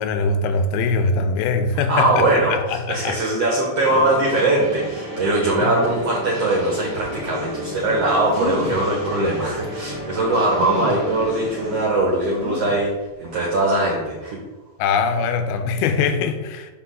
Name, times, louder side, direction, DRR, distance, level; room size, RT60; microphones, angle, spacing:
voice 1, 0.0-3.2 5.6-5.9 14.8-16.7, left 4 dB, 85° left, 7 dB, 2.5 m, -22 dB
voice 2, 1.9-12.9 13.2-14.4, right 2 dB, 70° right, -3 dB, 1.5 m, -21 dB
sound 1, 3.8-11.8, left 1 dB, 50° right, 0.4 m, -32 dB
sound 2, 8.3-8.9 9.6-9.7 10.6-11.1 12.4-12.9 13.4-13.5 13.8-13.9, equal, 25° right, 0.7 m, -29 dB
6.3 x 5.7 x 3.8 m, 1.2 s
omnidirectional pair, 4.4 m